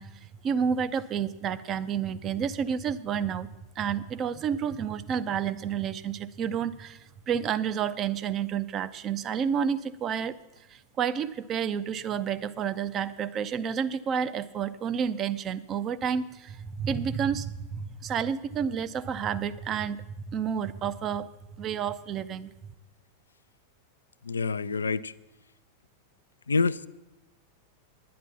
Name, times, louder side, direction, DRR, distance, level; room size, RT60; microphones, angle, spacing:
voice 1, 0.0-3.5 3.8-10.4 10.7-21.3 21.6-22.5, right 7 dB, 30° right, 13 dB, 0.5 m, -30 dB
voice 2, 24.2-25.1 26.5-26.9, left 4 dB, 75° left, 16 dB, 0.3 m, -27 dB
10.0 x 9.5 x 7.1 m, 1.0 s
figure-of-eight pair, 90°, 0 cm